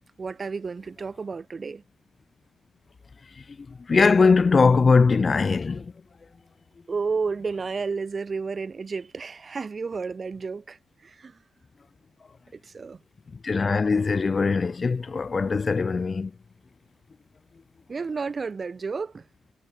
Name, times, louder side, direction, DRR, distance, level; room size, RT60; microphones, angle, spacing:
voice 1, 0.2-1.8 6.9-11.4 12.5-13.0 17.9-19.3, right 4 dB, 40° right, 5.1 m, -31 dB
voice 2, 3.9-5.8 13.4-16.3, left 4 dB, 40° left, 0.8 m, -20 dB
supercardioid pair, 55°, 0 cm